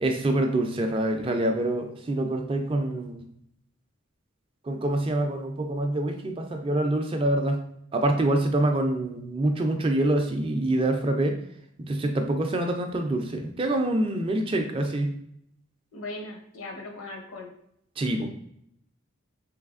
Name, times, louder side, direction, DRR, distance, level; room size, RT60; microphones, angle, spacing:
voice 1, 0.0-3.3 4.6-7.6 7.9-11.4 11.8-15.1 18.0-18.3, right 1 dB, 25° right, 5 dB, 0.3 m, -26 dB
voice 2, 15.9-17.5, left 2 dB, 75° left, 1 dB, 0.7 m, -38 dB
3.3 x 3.1 x 2.4 m, 0.73 s
head